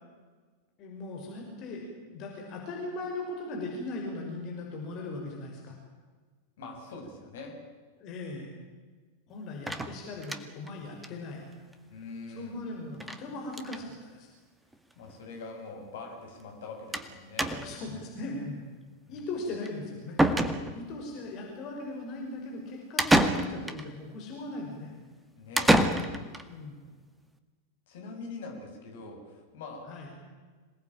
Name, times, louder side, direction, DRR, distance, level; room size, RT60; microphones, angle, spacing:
voice 1, 0.8-5.7 8.0-8.5 9.3-11.4 12.3-14.3 17.5-18.6 19.1-20.2 20.7-24.9 26.5-26.7 29.9-30.1, left 2 dB, 40° left, 0 dB, 6.0 m, -39 dB
voice 2, 6.6-7.5 11.9-12.6 15.0-17.6 19.1-19.5 25.4-25.8 27.9-29.9, left 3 dB, 55° left, 2 dB, 7.1 m, -43 dB
sound 1, 9.7-10.7 11.0-11.1 11.4-11.5 11.7-11.8 13.0-13.2 13.5-13.9 14.7-14.8 15.1-15.2 16.9-17.1 17.4-17.9 19.7-19.8 20.2-21.0 23.0-23.9 25.6-26.4, right 1 dB, 5° right, 1.9 m, -26 dB
26.5 x 19.0 x 9.0 m, 1.4 s
figure-of-eight pair, 90°, 0 cm